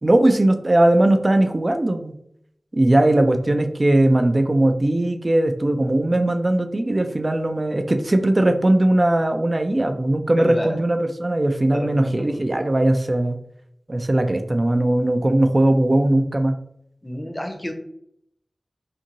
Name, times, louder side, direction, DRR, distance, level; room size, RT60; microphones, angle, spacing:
voice 1, 0.0-2.1 2.7-13.4 13.9-16.6, right 1 dB, 40° right, 7 dB, 0.3 m, -19 dB
voice 2, 10.4-10.8 11.6-12.4 17.0-17.7, equal, 25° left, 4 dB, 0.6 m, -31 dB
2.6 x 2.5 x 2.9 m, 0.72 s
cardioid pair, 40°, 0 cm